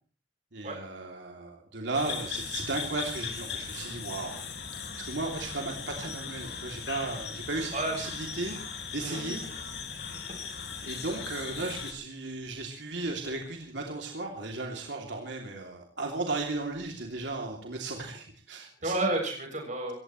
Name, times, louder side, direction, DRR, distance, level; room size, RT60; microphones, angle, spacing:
voice 1, 0.5-4.4 5.0-8.6 8.9-9.4 10.8-18.9, right 3 dB, 80° right, 1 dB, 2.9 m, -35 dB
sound 1, 1.9-11.9, left 6 dB, 65° left, 4.5 m, -38 dB
voice 2, 7.7-8.0 8.5-8.6 9.0-9.7 18.8-19.9, right 2 dB, 40° right, 2 dB, 7.0 m, -32 dB
27.0 x 16.0 x 3.2 m, 0.39 s
head